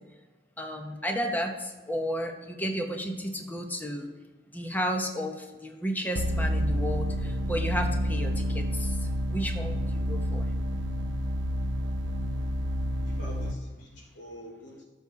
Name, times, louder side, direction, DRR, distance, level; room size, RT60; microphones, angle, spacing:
voice 1, 0.6-4.1 4.5-9.0 9.3-10.5, equal, 10° left, 3 dB, 1.0 m, -32 dB
sound 1, 6.2-13.5, equal, 80° right, 0.8 m, -29 dB
voice 2, 13.0-14.8, equal, 70° left, -3 dB, 3.3 m, -45 dB
12.5 x 7.2 x 4.7 m, 1.3 s
head